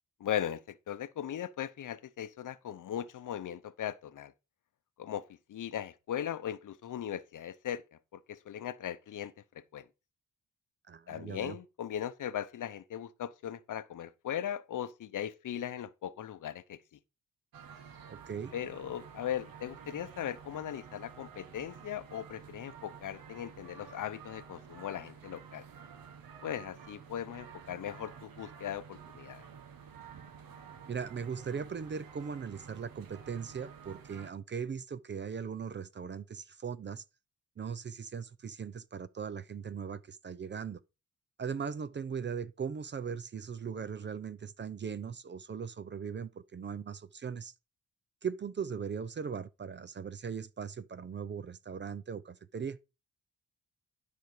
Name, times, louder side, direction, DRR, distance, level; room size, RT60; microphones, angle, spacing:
voice 1, 0.2-4.3 5.0-7.8 8.1-9.3 9.7-9.9 11.1-16.8 18.5-25.6 26.4-29.5, left 10 dB, 60° left, 0.8 m, -38 dB
voice 2, 10.9-11.6 18.1-18.5 30.9-37.0 37.6-40.8 41.4-47.5 48.2-52.8, right 6 dB, 35° right, 0.5 m, -39 dB
sound 1, 17.5-34.3, right 7 dB, 80° right, 1.7 m, -51 dB
12.0 x 5.0 x 4.8 m
wide cardioid pair, 155°, 35 cm